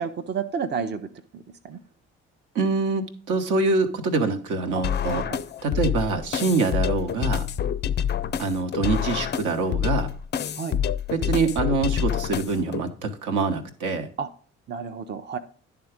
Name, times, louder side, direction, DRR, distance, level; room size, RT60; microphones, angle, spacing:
voice 1, 0.0-1.8 4.7-4.8 5.1-5.4 10.5-10.8 14.2-14.3 14.7-15.4, right 6 dB, 30° right, 7 dB, 0.6 m, -31 dB
voice 2, 2.5-5.2 5.6-7.5 8.4-10.1 11.1-14.1, right 3 dB, 60° right, 5 dB, 1.1 m, -25 dB
sound 1, 4.8-12.8, left 9 dB, 30° left, 0.4 m, -27 dB
10.5 x 3.6 x 5.0 m, 0.43 s
hypercardioid pair, 50°, 34 cm